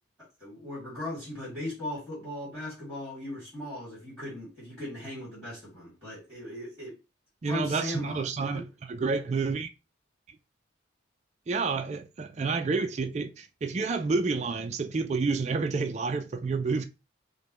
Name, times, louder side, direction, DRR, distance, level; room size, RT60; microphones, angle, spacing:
voice 1, 0.4-6.9 7.4-8.3, left 1 dB, 5° right, 2.2 m, -38 dB
voice 2, 7.4-9.7 11.5-16.9, right 4 dB, 35° right, 0.4 m, -29 dB
5.2 x 2.1 x 3.0 m
head